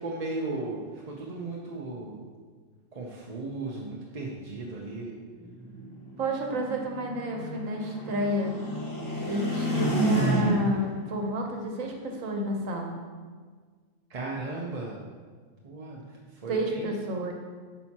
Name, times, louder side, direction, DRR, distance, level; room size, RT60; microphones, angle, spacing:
voice 1, 0.0-2.2 2.9-5.2 14.1-15.0 15.6-16.0 16.3-16.9, right 2 dB, 40° right, -3 dB, 0.6 m, -36 dB
sound 1, 5.4-10.9, right 1 dB, 20° left, 0.8 m, -30 dB
voice 2, 6.2-8.5 9.2-13.0 16.5-17.3, equal, 80° right, 2 dB, 1.3 m, -30 dB
8.9 x 5.7 x 2.9 m, 1.5 s
omnidirectional pair, 1.3 m